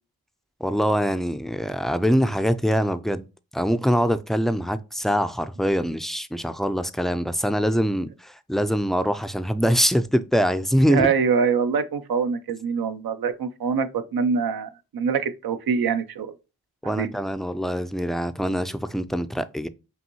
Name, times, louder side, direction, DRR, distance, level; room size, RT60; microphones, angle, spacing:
voice 1, 0.6-3.2 3.5-11.1 16.8-19.7, equal, ahead, 0.4 m, -23 dB
voice 2, 10.9-16.3 16.8-17.1, right 6 dB, 75° right, 0.6 m, -24 dB
5.4 x 2.6 x 2.9 m
cardioid pair, 40°, 37 cm